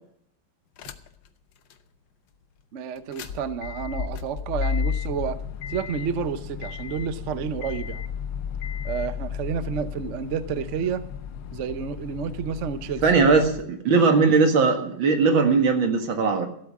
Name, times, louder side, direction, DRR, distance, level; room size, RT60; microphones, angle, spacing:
sound 1, 0.8-1.3 1.7-1.8 3.0-13.6, left 7 dB, 70° left, 1.6 m, -33 dB
voice 1, 2.7-5.4 5.7-8.0 8.8-11.1 11.5-13.0, right 7 dB, 55° right, 12 dB, 0.9 m, -30 dB
voice 2, 13.0-16.5, right 4 dB, 75° right, 6 dB, 2.5 m, -19 dB
14.5 x 8.5 x 7.3 m, 0.68 s
omnidirectional pair, 2.2 m